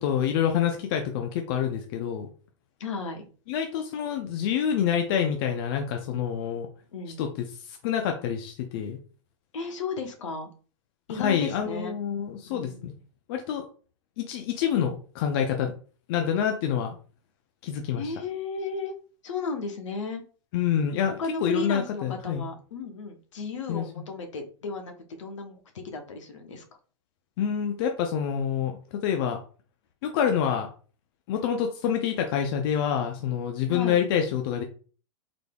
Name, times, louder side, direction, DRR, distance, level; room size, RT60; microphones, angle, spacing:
voice 1, 0.0-2.3 3.5-6.7 7.2-9.0 11.1-12.9 13.3-13.7 14.2-15.7 16.1-17.0 17.6-18.1 20.5-22.5 23.7-23.8 27.4-29.4 30.0-30.7 31.3-34.6, left 8 dB, 50° left, 4 dB, 0.6 m, -27 dB
voice 2, 2.8-3.3 6.9-7.2 9.5-10.5 11.1-11.9 12.5-12.9 18.0-18.9 19.2-20.2 21.2-26.6 33.7-34.0, left 4 dB, 70° left, 5 dB, 0.9 m, -34 dB
3.9 x 3.3 x 2.3 m, 0.39 s
hypercardioid pair, 110°, 16 cm